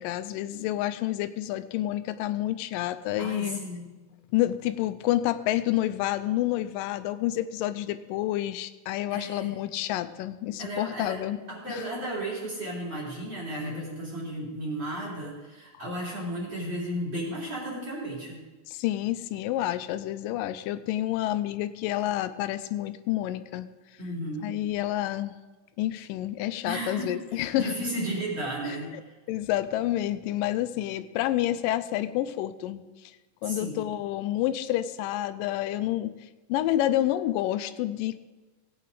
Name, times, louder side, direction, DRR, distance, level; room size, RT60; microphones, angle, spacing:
voice 1, 0.0-3.6 4.3-11.4 11.7-11.9 15.7-15.8 18.7-23.7 24.4-25.3 25.8-27.7 28.7-29.0 29.3-33.1 33.4-36.2 36.5-38.2, left 14 dB, 90° left, 12 dB, 2.2 m, -29 dB
voice 2, 3.2-4.0 9.1-9.5 10.6-11.2 11.5-18.4 24.0-24.5 26.6-29.1 33.4-33.8, right 1 dB, 35° right, -5 dB, 3.9 m, -34 dB
17.0 x 8.8 x 3.8 m, 1.2 s
omnidirectional pair, 3.8 m